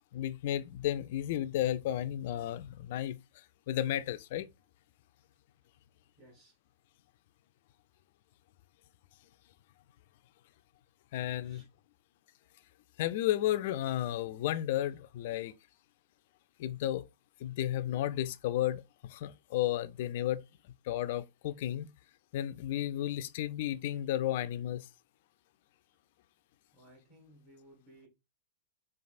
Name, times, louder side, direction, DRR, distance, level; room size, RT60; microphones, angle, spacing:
voice 1, 0.1-3.2 3.7-4.5 11.1-11.6 13.0-15.5 16.6-17.0 17.4-20.4 20.9-21.9 22.3-24.9, left 12 dB, 55° left, 0.3 m, -33 dB
voice 2, 6.2-6.6 11.4-11.7 26.7-28.1, right 1 dB, 45° right, 2.2 m, -59 dB
4.6 x 2.4 x 2.5 m
hypercardioid pair, 105°, 0 cm